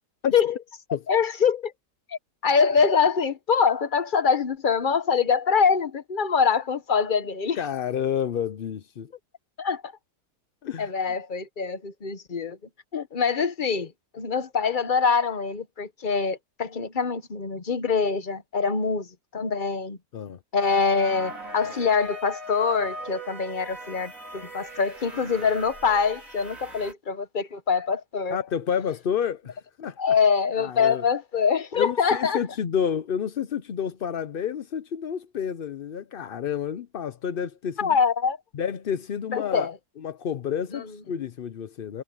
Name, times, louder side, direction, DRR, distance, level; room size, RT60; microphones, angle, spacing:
voice 1, 1.1-1.7 2.4-7.6 9.6-9.9 10.8-12.6 12.9-19.1 19.3-20.0 20.5-28.4 30.0-32.4 37.8-38.4 39.3-39.7 40.7-40.8, left 6 dB, 35° left, 1.1 m, -24 dB
voice 2, 7.5-9.1 10.6-10.9 20.1-20.4 28.3-30.0 30.6-31.0 31.7-38.0 38.5-39.7 40.0-42.0, left 8 dB, 55° left, 0.6 m, -29 dB
sound 1, 20.6-26.9, right 1 dB, 55° right, 4.9 m, -40 dB
omnidirectional pair, 1.7 m